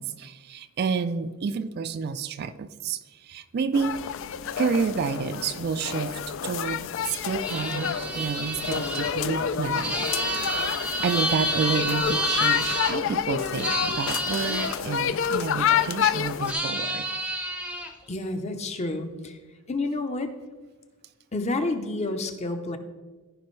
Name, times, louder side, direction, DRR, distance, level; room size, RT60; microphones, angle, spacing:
voice 1, 0.0-4.0 4.6-10.5 11.0-17.1, right 5 dB, 45° right, 12 dB, 0.3 m, -30 dB
sound 1, 3.7-16.5, left 8 dB, 60° left, 0.3 m, -29 dB
sound 2, 7.4-12.9 13.6-14.8 16.5-17.9, right 1 dB, 5° right, 0.6 m, -29 dB
voice 2, 18.1-19.4 19.7-20.3 21.3-22.8, left 2 dB, 30° left, 7 dB, 0.7 m, -29 dB
15.0 x 5.1 x 3.2 m, 1.3 s
head